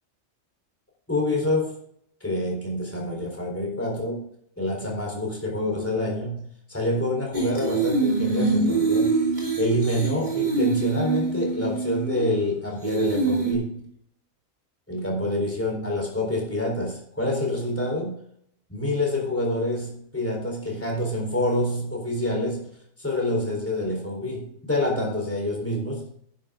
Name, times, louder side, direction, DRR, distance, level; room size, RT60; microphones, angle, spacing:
voice 1, 1.1-1.8 2.2-4.2 4.6-6.4 6.7-9.1 9.6-13.8 14.9-18.1 18.7-22.7 23.0-26.0, left 1 dB, 10° left, -1 dB, 3.9 m, -27 dB
sound 1, 7.3-12.5 12.8-13.5, right 4 dB, 35° right, 2.8 m, -24 dB
11.0 x 11.0 x 3.7 m, 0.66 s
omnidirectional pair, 1.4 m